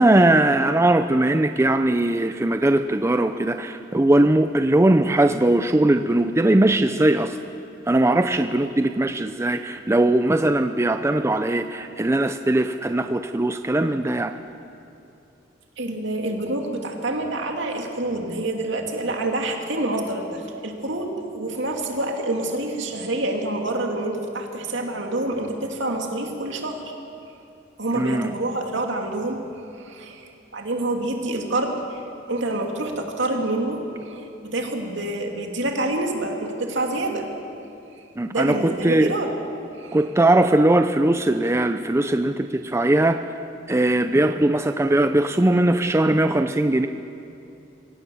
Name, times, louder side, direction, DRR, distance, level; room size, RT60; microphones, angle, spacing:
voice 1, 0.0-7.4 7.9-14.3 27.9-28.3 38.2-39.1 39.9-43.2 43.7-46.9, right 1 dB, 15° right, 8 dB, 0.5 m, -20 dB
voice 2, 15.8-26.8 27.8-29.4 29.8-32.0 32.3-37.3 38.3-39.3 39.8-40.0, right 2 dB, 65° right, 2 dB, 2.6 m, -27 dB
24.0 x 17.5 x 7.1 m, 2.7 s
head